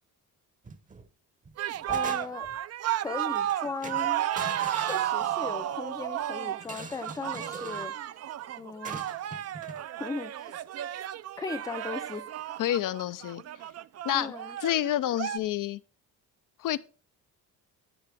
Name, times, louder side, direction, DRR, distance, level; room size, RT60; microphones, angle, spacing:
sound 1, 0.6-1.1 1.5-2.6 3.3-3.5 3.8-5.7 6.6-7.9 8.8-9.8, right 4 dB, 25° right, 0.8 m, -42 dB
sound 2, 1.6-15.4, right 12 dB, 50° right, 0.4 m, -33 dB
voice 1, 1.9-2.5 3.0-4.2 4.8-8.0 8.6-9.0 10.0-10.5 11.4-12.6 14.1-14.6, left 4 dB, 10° left, 0.4 m, -38 dB
voice 2, 12.6-13.4 14.0-14.3 14.6-15.8 16.6-16.8, left 12 dB, 70° left, 0.5 m, -28 dB
10.0 x 9.1 x 3.3 m
cardioid pair, 120°, 33 cm